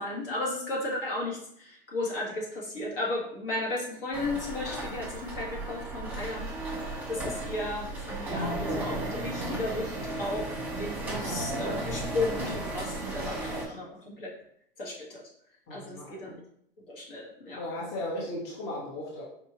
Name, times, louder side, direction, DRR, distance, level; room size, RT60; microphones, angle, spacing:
voice 1, 0.0-14.3 14.8-15.2 15.7-16.3 16.9-17.6, left 2 dB, 70° left, -3 dB, 1.6 m, -34 dB
sound 1, 4.1-13.6, right 2 dB, 5° right, 1.1 m, -34 dB
voice 2, 15.7-16.4 17.5-19.2, left 1 dB, 35° left, -3 dB, 1.1 m, -36 dB
4.6 x 2.6 x 3.0 m, 0.68 s
hypercardioid pair, 125°, 29 cm